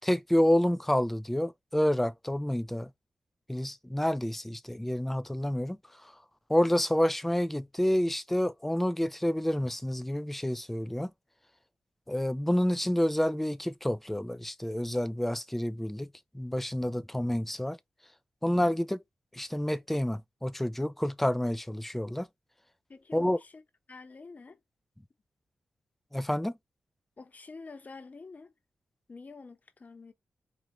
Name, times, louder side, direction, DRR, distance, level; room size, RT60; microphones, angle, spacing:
voice 1, 0.0-2.9 3.5-5.8 6.5-11.1 12.1-16.1 16.3-17.8 18.4-19.0 19.3-22.3 23.1-23.4 26.1-26.5, left 1 dB, 5° left, 0.4 m, -28 dB
voice 2, 22.9-23.6 23.9-24.6 27.2-28.5 29.1-30.1, left 4 dB, 45° left, 0.9 m, -47 dB
4.5 x 2.5 x 2.9 m
supercardioid pair, 45°, 4 cm